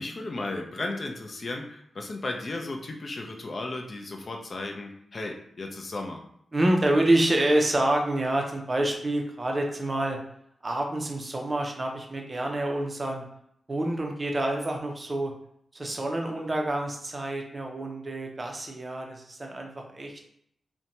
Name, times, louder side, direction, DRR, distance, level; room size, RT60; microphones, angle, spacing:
voice 1, 0.0-6.2, left 2 dB, 45° left, 2 dB, 0.4 m, -35 dB
voice 2, 6.5-10.2 10.6-13.2 13.7-15.3 15.7-20.1, right 1 dB, 25° right, 1 dB, 0.5 m, -27 dB
2.5 x 2.1 x 2.9 m, 0.70 s
wide cardioid pair, 115°, 0 cm